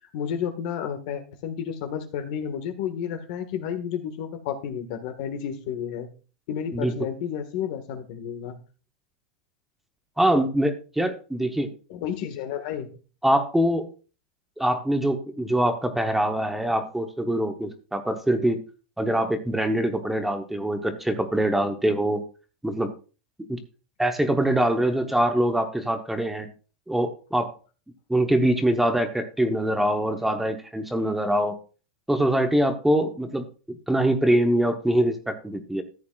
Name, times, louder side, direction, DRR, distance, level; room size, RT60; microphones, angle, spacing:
voice 1, 0.1-6.1 6.5-8.6 11.9-12.9, left 8 dB, 60° left, 7 dB, 1.7 m, -31 dB
voice 2, 10.2-11.7 13.2-13.9 14.6-18.6 19.0-22.2 22.6-22.9 23.5-23.6 24.0-26.5 26.9-27.5 28.1-31.6 32.1-33.5 33.9-35.8, right 1 dB, 5° right, 7 dB, 0.9 m, -23 dB
14.0 x 8.5 x 2.4 m, 0.35 s
supercardioid pair, 135°, 4 cm